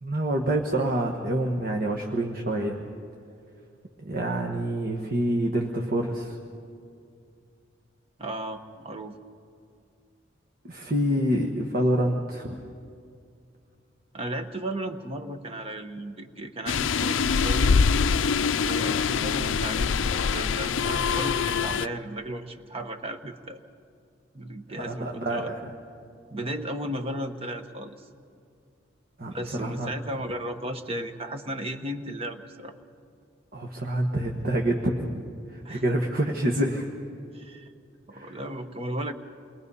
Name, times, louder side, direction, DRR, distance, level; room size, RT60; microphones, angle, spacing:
voice 1, 0.0-2.8 4.0-6.4 10.6-12.6 24.8-25.7 29.2-29.9 33.5-35.2 35.5-36.9 38.1-38.4, right 1 dB, 50° right, 1 dB, 1.4 m, -27 dB
voice 2, 8.2-9.2 14.1-17.7 18.6-23.6 24.3-25.5 26.3-28.0 29.2-32.7 35.6-35.8 37.3-37.7 38.1-39.1, right 1 dB, 30° right, 7 dB, 1.2 m, -35 dB
sound 1, 16.7-21.9, left 5 dB, 85° left, 0.5 m, -24 dB
28.5 x 22.0 x 5.6 m, 2.4 s
head